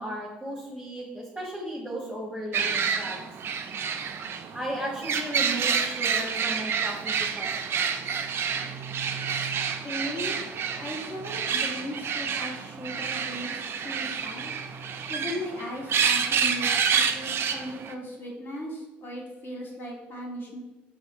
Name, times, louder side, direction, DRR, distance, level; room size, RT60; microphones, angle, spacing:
voice 1, 0.0-3.2 4.5-7.9 17.8-17.9 20.1-20.2, right 1 dB, 10° right, -4 dB, 1.0 m, -35 dB
sound 1, 2.5-17.9, right 6 dB, 45° right, 0.4 m, -28 dB
voice 2, 9.8-10.4 10.8-14.6 15.1-20.6, equal, 40° left, -2 dB, 1.2 m, -37 dB
4.8 x 3.1 x 2.6 m, 1.1 s
hypercardioid pair, 55°, 6 cm